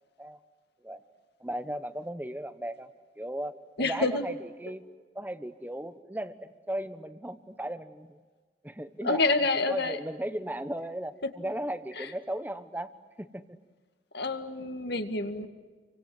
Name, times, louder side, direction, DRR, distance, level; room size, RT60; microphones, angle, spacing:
voice 1, 1.4-2.9 3.2-4.8 5.1-8.2 8.6-9.2 9.7-12.9 13.2-13.6, right 1 dB, 10° right, 11 dB, 1.1 m, -36 dB
voice 2, 3.8-4.2 9.0-10.0 12.0-12.1 14.1-15.5, left 3 dB, 60° left, 7 dB, 2.1 m, -28 dB
29.5 x 24.5 x 7.9 m, 1.4 s
head